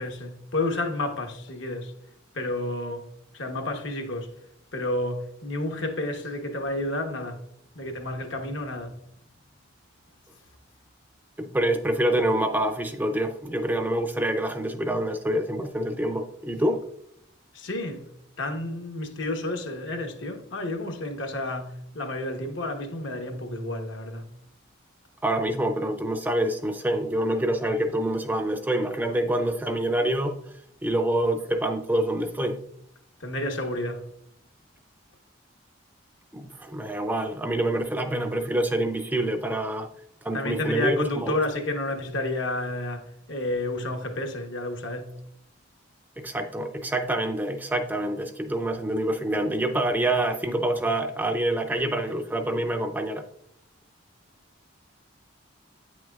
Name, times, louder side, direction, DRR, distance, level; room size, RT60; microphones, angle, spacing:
voice 1, 0.0-1.9 2.3-3.1 3.3-4.3 4.7-7.4 7.7-9.0 17.5-18.1 18.4-24.3 33.2-34.0 40.3-45.1, left 2 dB, 70° left, 1.1 m, -30 dB
voice 2, 11.4-16.8 25.2-30.3 30.8-32.6 36.3-39.9 40.2-41.4 46.2-53.2, right 1 dB, 10° right, 0.4 m, -26 dB
8.5 x 6.2 x 2.3 m
head